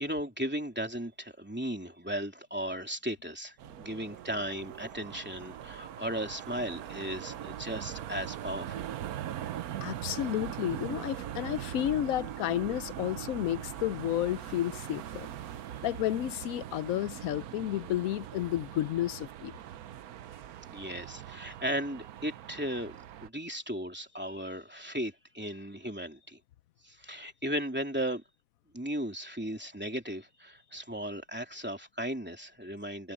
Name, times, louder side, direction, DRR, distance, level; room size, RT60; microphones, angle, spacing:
voice 1, 0.0-8.9 20.7-22.9 23.2-26.4 26.8-28.2 28.7-33.1, equal, 5° right, 3.0 m, -36 dB
sound 1, 3.6-23.3, right 11 dB, 70° right, 1.2 m, -41 dB
voice 2, 9.8-15.3 15.8-19.5, left 13 dB, 70° left, 1.0 m, -31 dB
omnidirectional pair, 1.7 m